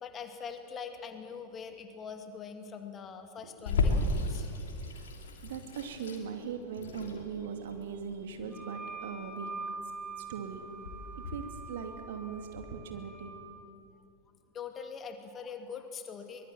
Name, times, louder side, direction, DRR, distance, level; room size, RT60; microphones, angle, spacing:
voice 1, 0.0-4.5 14.5-16.5, left 6 dB, 25° left, 6 dB, 2.2 m, -43 dB
Water tap faucet / Sink (filling or washing), 3.7-12.6, left 3 dB, 65° left, 3.0 m, -35 dB
voice 2, 5.4-9.5 10.2-10.7 11.2-13.3, right 6 dB, 55° right, 6 dB, 2.4 m, -40 dB
Wind instrument woodwind instrument, 8.5-13.5, right 4 dB, 10° right, 2.6 m, -44 dB
24.0 x 21.0 x 7.7 m, 2.7 s
figure-of-eight pair, 90°, 0 cm